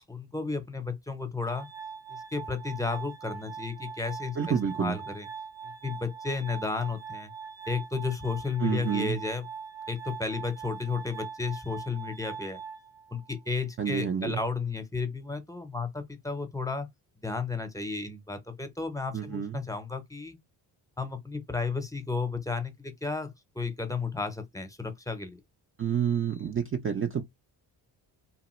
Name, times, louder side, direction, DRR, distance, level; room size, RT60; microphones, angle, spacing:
voice 1, 0.1-1.7 2.1-5.3 5.6-7.3 7.7-9.4 9.9-12.6 13.1-16.9 17.2-20.4 21.0-25.4, left 4 dB, 5° left, 0.7 m, -33 dB
Glass, 1.4-13.5, right 6 dB, 90° right, 1.4 m, -42 dB
voice 2, 4.4-5.0 8.6-9.2 13.8-14.4 19.1-19.6 25.8-27.2, right 8 dB, 30° right, 0.4 m, -29 dB
2.9 x 2.2 x 3.0 m
cardioid pair, 70°, 45 cm